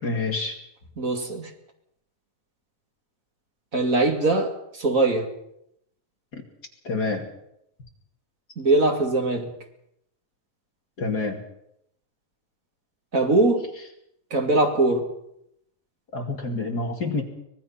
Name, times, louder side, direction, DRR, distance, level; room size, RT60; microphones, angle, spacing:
voice 1, 0.0-0.6 6.3-6.4 6.8-7.3 11.0-11.4 16.1-17.2, left 3 dB, 30° left, 2 dB, 2.5 m, -27 dB
voice 2, 1.0-1.5 3.7-5.3 8.6-9.5 13.1-13.6 14.3-15.0, right 2 dB, 25° right, 3 dB, 2.3 m, -21 dB
25.0 x 18.5 x 5.8 m, 0.77 s
omnidirectional pair, 3.9 m